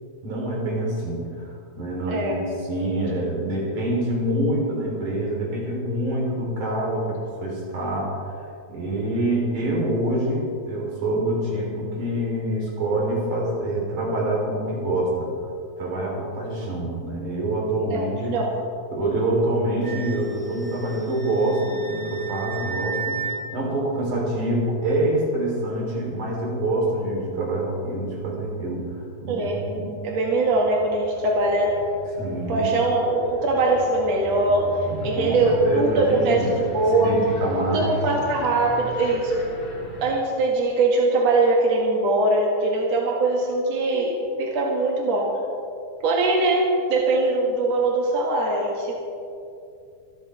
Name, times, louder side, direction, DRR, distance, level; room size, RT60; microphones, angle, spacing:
voice 1, 0.2-8.2 8.7-15.3 15.8-18.3 18.9-23.2 23.5-29.9 32.2-32.7 34.9-36.5 36.9-38.0, right 1 dB, 90° right, -3 dB, 5.2 m, -26 dB
voice 2, 2.1-2.4 17.9-18.5 29.3-29.7 30.0-31.8 32.5-34.7 35.0-37.2 37.7-39.5 40.0-45.3 46.0-49.1, right 2 dB, 60° right, -2 dB, 3.1 m, -22 dB
Wind instrument woodwind instrument, 19.8-23.4, right 5 dB, 40° left, 2.7 m, -34 dB
sound 1, 30.0-40.2, left 1 dB, 85° left, 4.9 m, -39 dB
25.5 x 13.0 x 3.5 m, 2.5 s
omnidirectional pair, 3.5 m